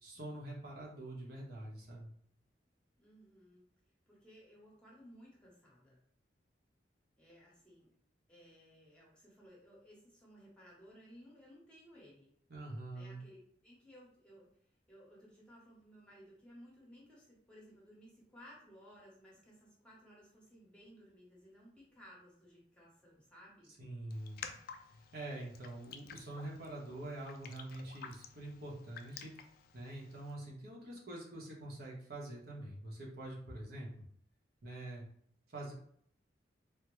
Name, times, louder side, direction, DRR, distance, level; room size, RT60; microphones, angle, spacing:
voice 1, 0.0-2.1 12.5-13.2 23.8-24.4 25.1-29.3 29.7-33.9 34.6-35.0 35.5-35.7, right 1 dB, 60° right, -3 dB, 0.9 m, -45 dB
voice 2, 3.0-3.6 4.1-6.0 7.2-7.9 8.3-12.3 12.9-14.5 14.9-23.7, equal, 5° left, -5 dB, 0.9 m, -59 dB
Raindrop, 24.1-30.3, left 7 dB, 55° left, 0.3 m, -52 dB
3.4 x 2.1 x 3.0 m, 0.63 s
head